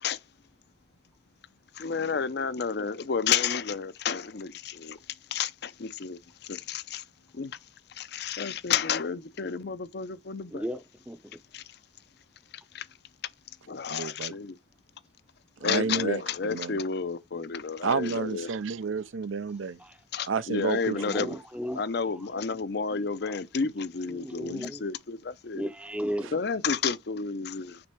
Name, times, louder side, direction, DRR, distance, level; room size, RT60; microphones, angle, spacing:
voice 1, 1.8-5.0 5.3-6.2 6.5-7.0 7.3-7.5 8.0-10.6 11.5-11.6 12.7-12.8 13.7-14.6 15.6-18.5 20.1-21.4 21.8-25.7 26.3-27.8, left 6 dB, 55° left, 0.5 m, -31 dB
voice 2, 10.5-11.2 19.8-20.0 20.9-21.8 22.1-22.2 23.2-23.3 24.1-24.8 25.5-26.3, equal, 5° right, 0.5 m, -35 dB
voice 3, 13.9-14.4 15.6-16.8 17.8-19.8 20.3-21.3 22.9-23.0 26.2-26.3, right 5 dB, 85° right, 0.5 m, -31 dB
6.1 x 3.5 x 4.4 m
head